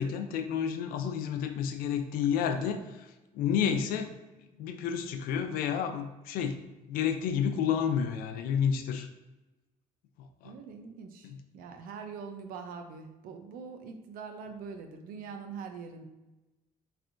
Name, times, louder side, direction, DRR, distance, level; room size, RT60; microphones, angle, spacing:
voice 1, 0.0-3.1 3.3-4.1 4.6-6.6 6.9-9.1 10.4-10.5 11.2-11.4, left 8 dB, 85° left, 7 dB, 0.4 m, -30 dB
voice 2, 3.7-4.1 10.4-16.1, right 5 dB, 75° right, 6 dB, 0.5 m, -43 dB
4.3 x 3.3 x 2.5 m, 1.1 s
cardioid pair, 110°, 15 cm